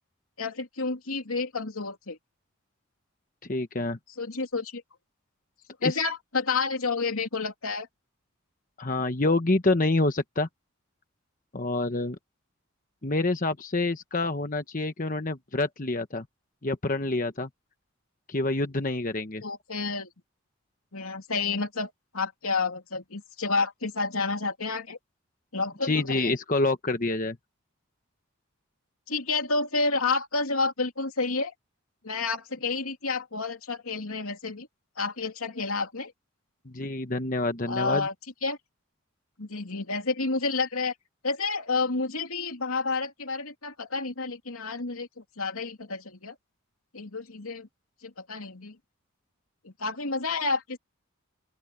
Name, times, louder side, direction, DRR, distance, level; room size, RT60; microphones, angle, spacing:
voice 1, 0.4-2.2 4.2-4.8 5.8-7.9 19.4-20.1 20.9-25.0 25.5-26.3 29.1-31.5 32.0-34.7 35.0-36.1 37.7-38.1 38.4-38.6 39.4-40.9 41.2-45.1 45.4-46.3 46.9-47.7 48.0-48.7 49.6-50.8, left 3 dB, 90° left, 3.0 m, -30 dB
voice 2, 3.5-4.0 5.8-6.0 8.8-10.5 11.5-12.2 13.0-16.2 16.6-17.5 18.3-19.4 25.8-27.4 36.7-38.1, left 2 dB, 40° left, 1.1 m, -27 dB
open air
head